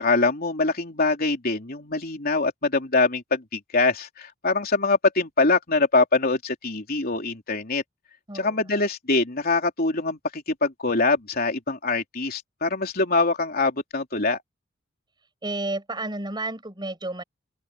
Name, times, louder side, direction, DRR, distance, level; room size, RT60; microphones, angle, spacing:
voice 1, 0.0-7.8 8.3-14.4, left 3 dB, 50° left, 3.5 m, -24 dB
voice 2, 8.3-8.8 15.4-17.2, right 2 dB, 20° right, 6.6 m, -32 dB
open air
head